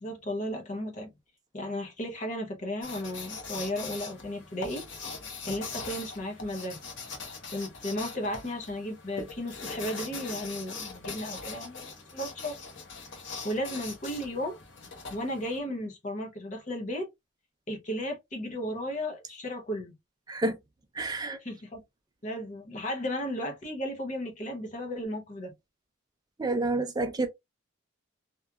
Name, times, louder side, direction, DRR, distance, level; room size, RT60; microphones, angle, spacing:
voice 1, 0.0-1.1 1.5-4.8 5.4-6.8 7.5-12.6 13.4-14.6 15.1-17.1 17.7-19.9 21.4-21.8 22.2-25.5, equal, 35° left, 0.7 m, -34 dB
sound 1, 2.8-15.6, left 4 dB, 65° left, 0.9 m, -41 dB
voice 2, 20.9-21.4 26.4-27.3, right 2 dB, 20° right, 0.5 m, -29 dB
2.9 x 2.3 x 2.3 m
head